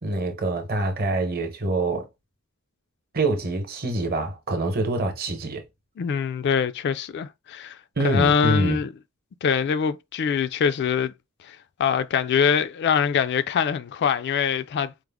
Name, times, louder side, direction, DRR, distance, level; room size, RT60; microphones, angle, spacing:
voice 1, 0.0-2.1 3.1-5.6 8.0-8.8, right 2 dB, 45° right, 0.9 m, -25 dB
voice 2, 6.0-7.8 8.0-8.9 9.4-11.1 11.4-15.0, left 7 dB, 50° left, 0.3 m, -24 dB
4.7 x 2.0 x 3.5 m
head